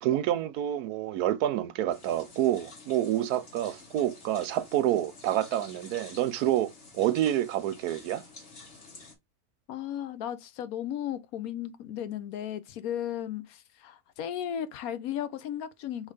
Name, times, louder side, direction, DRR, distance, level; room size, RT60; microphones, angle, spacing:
voice 1, 0.0-8.2, right 12 dB, 85° right, 1.1 m, -28 dB
sound 1, 1.9-9.2, left 3 dB, 50° left, 1.8 m, -50 dB
voice 2, 9.7-16.1, left 10 dB, 75° left, 1.1 m, -35 dB
3.3 x 3.3 x 4.8 m
omnidirectional pair, 1.6 m